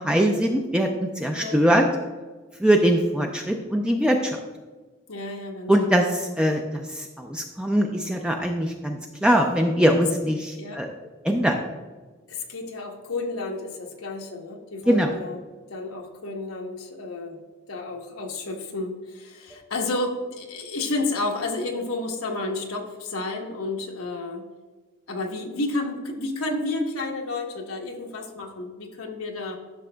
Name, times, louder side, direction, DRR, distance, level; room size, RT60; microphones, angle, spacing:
voice 1, 0.0-1.9 2.6-4.4 5.7-10.9 11.2-11.6 14.9-15.1 19.5-19.6, equal, 5° right, 2 dB, 0.3 m, -22 dB
voice 2, 1.3-1.8 5.1-6.1 10.5-10.8 12.3-15.4 15.7-17.4 17.7-24.5 25.1-29.6, left 2 dB, 85° left, 1 dB, 1.0 m, -31 dB
11.5 x 6.0 x 2.2 m, 1.3 s
head